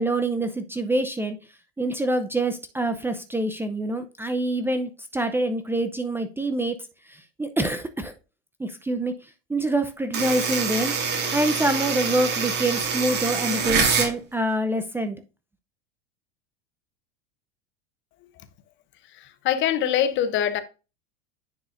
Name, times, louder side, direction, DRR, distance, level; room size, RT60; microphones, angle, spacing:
voice 1, 0.0-1.4 1.8-6.8 7.1-8.1 8.6-9.1 9.5-10.9 11.3-15.2, right 1 dB, 10° right, 0.6 m, -26 dB
sound 1, 10.1-14.1, right 5 dB, 35° right, 2.4 m, -25 dB
voice 2, 19.4-20.6, left 10 dB, 40° left, 0.9 m, -23 dB
9.7 x 4.7 x 2.6 m
hypercardioid pair, 105°, 29 cm